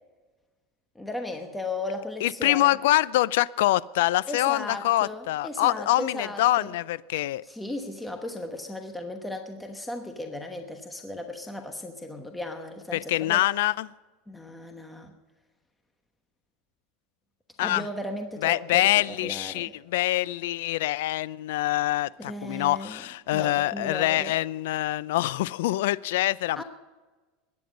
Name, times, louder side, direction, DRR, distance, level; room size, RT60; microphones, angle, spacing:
voice 1, 0.9-2.8 4.3-6.7 7.4-13.4 14.3-15.1 17.6-18.9 19.2-19.7 22.2-23.0 23.3-24.3 26.6-26.7, left 2 dB, 5° left, 4 dB, 1.1 m, -36 dB
voice 2, 2.2-7.4 12.9-13.9 17.6-17.9 18.4-26.6, left 16 dB, 80° left, 20 dB, 0.4 m, -25 dB
20.5 x 9.5 x 5.2 m, 1.2 s
supercardioid pair, 150°, 0 cm